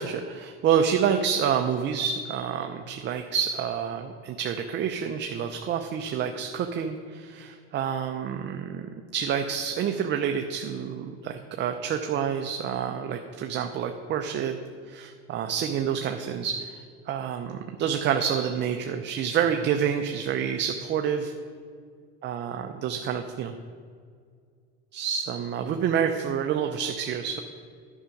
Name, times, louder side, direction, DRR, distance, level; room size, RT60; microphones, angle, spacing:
voice 1, 0.0-8.9 9.1-14.6 14.9-21.3 22.2-23.6 24.9-27.4, right 8 dB, 35° right, 5 dB, 0.5 m, -28 dB
10.0 x 5.7 x 5.2 m, 2.1 s
supercardioid pair, 125°, 32 cm